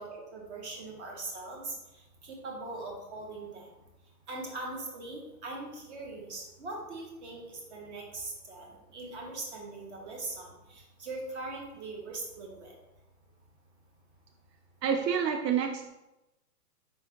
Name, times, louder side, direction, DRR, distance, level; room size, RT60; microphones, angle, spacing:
voice 1, 0.0-3.7 4.3-8.7 8.9-12.8, right 2 dB, 45° right, 0 dB, 1.2 m, -41 dB
voice 2, 14.8-15.9, right 7 dB, 80° right, 4 dB, 0.6 m, -28 dB
4.7 x 3.5 x 2.9 m, 0.98 s
hypercardioid pair, 155°, 49 cm